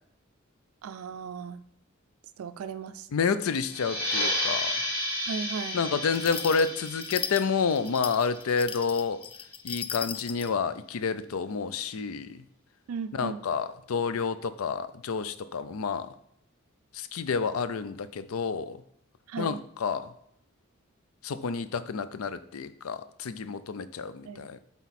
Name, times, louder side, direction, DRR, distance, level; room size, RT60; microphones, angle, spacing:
voice 1, 0.8-1.6 2.4-3.1 5.3-5.8 12.9-13.4 19.3-19.6 24.3-24.4, right 5 dB, 85° right, 11 dB, 0.4 m, -36 dB
voice 2, 3.1-4.8 5.7-9.2 9.6-12.4 13.1-16.1 16.9-18.8 19.4-20.1 21.2-24.6, left 5 dB, 90° left, 13 dB, 0.5 m, -29 dB
sound 1, 3.6-8.9, left 1 dB, 65° left, 1.7 m, -32 dB
sound 2, 6.1-10.5, left 8 dB, 25° left, 0.3 m, -37 dB
8.1 x 3.5 x 4.2 m, 0.71 s
head